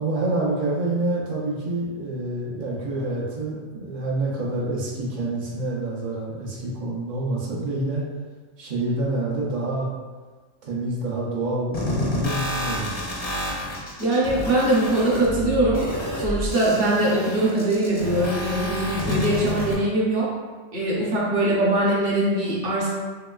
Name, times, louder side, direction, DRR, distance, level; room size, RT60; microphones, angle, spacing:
voice 1, 0.0-8.0 8.6-9.9 10.6-12.9, right 2 dB, 75° right, -5 dB, 0.4 m, -27 dB
sound 1, 11.7-19.7, equal, 45° left, 0.5 m, -29 dB
voice 2, 14.0-15.8 16.2-20.3 20.7-22.9, right 1 dB, 50° right, -5 dB, 0.8 m, -22 dB
3.0 x 2.9 x 2.2 m, 1.4 s
omnidirectional pair, 1.5 m